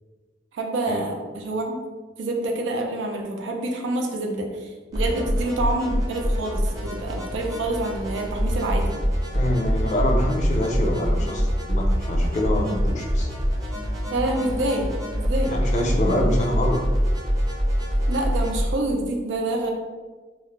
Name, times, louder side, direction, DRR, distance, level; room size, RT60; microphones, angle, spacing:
voice 1, 0.5-1.9 2.2-9.0 14.1-15.6 18.1-19.7, right 2 dB, 85° right, 2 dB, 0.4 m, -27 dB
sound 1, 4.9-18.6, equal, 20° right, 0.6 m, -24 dB
voice 2, 9.3-13.3 15.4-16.8, left 1 dB, 40° left, 1 dB, 0.4 m, -25 dB
2.3 x 2.0 x 3.0 m, 1.4 s
head